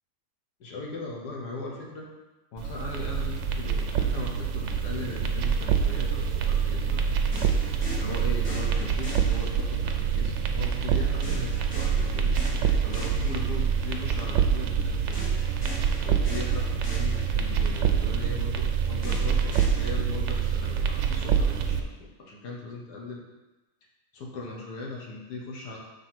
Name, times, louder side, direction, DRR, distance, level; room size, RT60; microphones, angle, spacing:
voice 1, 0.6-2.1 2.5-7.0 8.0-12.4 12.8-15.2 16.0-23.2 24.1-25.8, left 2 dB, 85° left, -1 dB, 1.8 m, -38 dB
sound 1, 2.6-21.8, right 7 dB, 65° right, 0.7 m, -26 dB
sound 2, 7.3-10.0 11.2-13.8 15.1-17.8 19.0-19.9, equal, 45° left, 2.2 m, -41 dB
6.5 x 3.7 x 5.8 m, 1.1 s
omnidirectional pair, 1.7 m